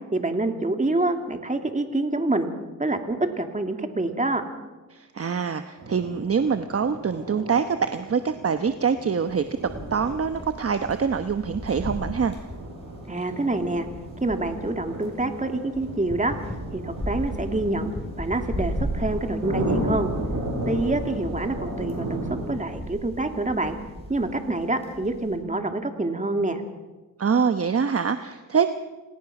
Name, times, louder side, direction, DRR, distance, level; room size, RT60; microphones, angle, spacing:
voice 1, 0.1-2.5 2.8-4.4 13.1-13.9 14.2-16.3 16.7-17.9 18.2-20.1 20.7-23.7 24.1-26.6, right 2 dB, 25° right, 6 dB, 2.6 m, -26 dB
voice 2, 4.9-9.4 9.9-12.3 27.2-28.7, right 6 dB, 45° right, 9 dB, 1.0 m, -24 dB
sound 1, 5.8-22.5, right 1 dB, 85° right, 7.9 m, -35 dB
sound 2, 9.2-25.4, equal, 20° left, 7.5 m, -36 dB
27.5 x 18.0 x 6.0 m, 1.2 s
cardioid pair, 70°, 33 cm